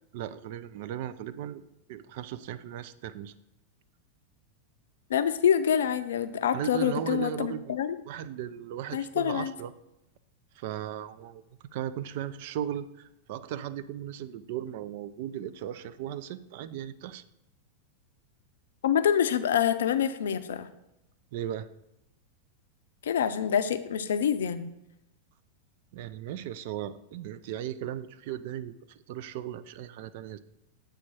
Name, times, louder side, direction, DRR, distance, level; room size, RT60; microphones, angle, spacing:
voice 1, 0.1-1.6 1.9-3.3 6.5-7.8 8.1-9.7 10.6-11.4 11.7-17.2 21.3-21.7 25.9-30.4, right 10 dB, 50° right, 13 dB, 0.3 m, -37 dB
voice 2, 5.1-8.0 8.9-9.5 18.8-20.7 23.0-24.7, left 8 dB, 60° left, 11 dB, 0.4 m, -26 dB
7.4 x 3.4 x 5.7 m, 0.91 s
figure-of-eight pair, 90°, 0 cm